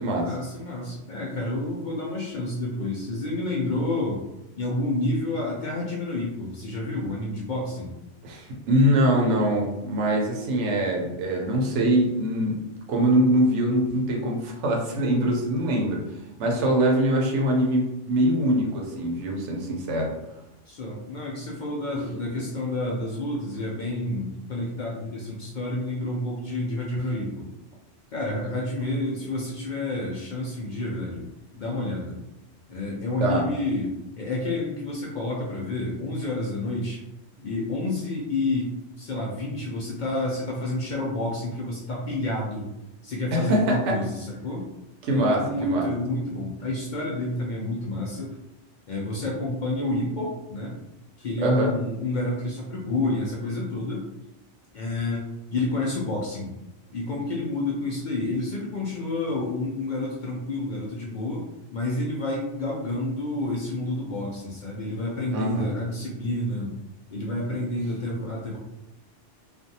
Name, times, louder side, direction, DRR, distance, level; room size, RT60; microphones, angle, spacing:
voice 1, 0.2-4.2 4.6-7.9 20.7-27.5 28.1-31.3 31.6-32.2 32.7-37.0 37.4-42.7 43.0-44.7 45.1-48.4 48.9-50.8 51.2-54.1 54.7-56.5 56.9-66.7 67.1-68.6, left 2 dB, 60° left, -3 dB, 0.5 m, -29 dB
voice 2, 8.2-12.6 12.9-16.0 16.4-20.1 33.2-33.4 43.3-43.9 45.0-45.8 51.4-51.7 65.3-65.8, right 1 dB, 85° right, -1 dB, 1.0 m, -23 dB
2.5 x 2.3 x 2.7 m, 0.92 s
omnidirectional pair, 1.2 m